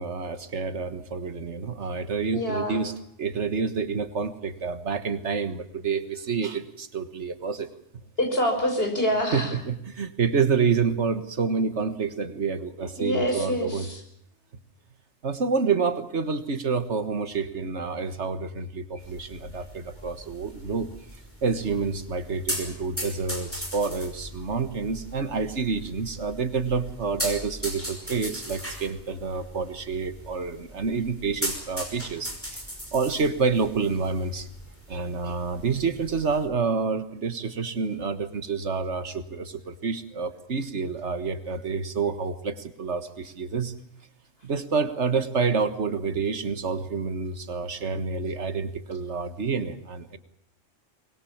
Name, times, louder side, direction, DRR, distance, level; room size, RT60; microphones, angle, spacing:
voice 1, 0.0-7.7 9.3-13.9 15.2-20.9 21.4-32.6 32.9-34.5 34.9-43.7 44.4-50.2, right 5 dB, 80° right, 11 dB, 1.8 m, -28 dB
voice 2, 2.3-2.8 8.2-9.5 13.0-14.0, equal, 55° left, 3 dB, 5.9 m, -26 dB
sound 1, 19.0-36.5, equal, 10° left, 5.4 m, -38 dB
23.0 x 21.0 x 7.2 m, 0.75 s
omnidirectional pair, 1.2 m